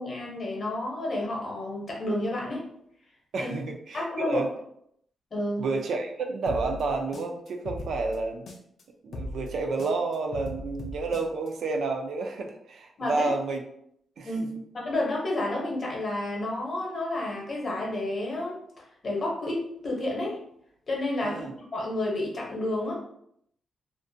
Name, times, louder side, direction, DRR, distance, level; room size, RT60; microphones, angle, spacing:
voice 1, 0.0-2.7 3.4-3.5 3.9-4.4 5.3-5.7 13.0-13.3 14.2-18.6 19.0-20.4 20.9-22.9, left 1 dB, 40° left, -3 dB, 0.8 m, -30 dB
voice 2, 3.3-4.5 5.6-8.5 9.0-13.6 14.2-14.3 21.2-21.5, right 3 dB, 65° right, 3 dB, 0.3 m, -30 dB
sound 1, 6.5-8.8 9.1-11.5, left 1 dB, 55° left, 0.4 m, -39 dB
2.4 x 2.1 x 2.6 m, 0.71 s
wide cardioid pair, 140°, 0 cm